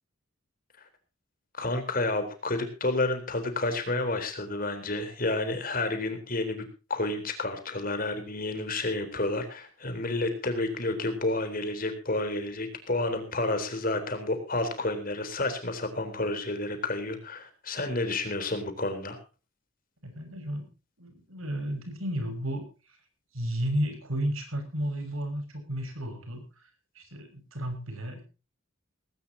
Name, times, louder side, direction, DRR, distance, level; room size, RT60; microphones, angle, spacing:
voice 1, 1.6-6.6 6.9-19.2, left 2 dB, 40° left, 7 dB, 3.9 m, -30 dB
voice 2, 20.0-20.7 21.0-23.0 23.3-26.7 26.9-28.3, equal, 80° right, 7 dB, 6.1 m, -33 dB
19.0 x 17.5 x 2.8 m, 0.33 s
head